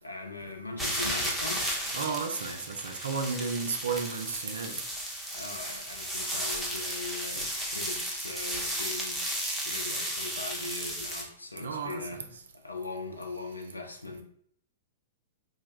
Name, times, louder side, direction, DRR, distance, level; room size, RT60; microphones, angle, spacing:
voice 1, 0.0-1.7 5.3-14.2, left 3 dB, 90° left, 0.4 m, -40 dB
sound 1, 0.8-11.2, equal, ahead, 0.6 m, -34 dB
voice 2, 1.9-4.8 11.6-12.3, right 5 dB, 70° right, 0.4 m, -33 dB
2.2 x 2.1 x 3.0 m
figure-of-eight pair, 105°, 0 cm